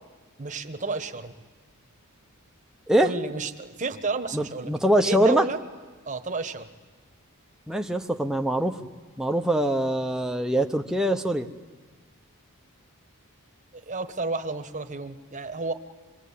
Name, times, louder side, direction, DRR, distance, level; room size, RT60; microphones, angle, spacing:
voice 1, 0.4-1.3 3.0-4.7 5.0-5.6 6.1-6.7 13.7-15.7, right 3 dB, 35° right, 8 dB, 1.2 m, -31 dB
voice 2, 4.3-5.5 7.7-8.8 9.2-11.5, right 1 dB, 5° right, 4 dB, 0.9 m, -23 dB
26.0 x 22.0 x 8.5 m, 1.4 s
head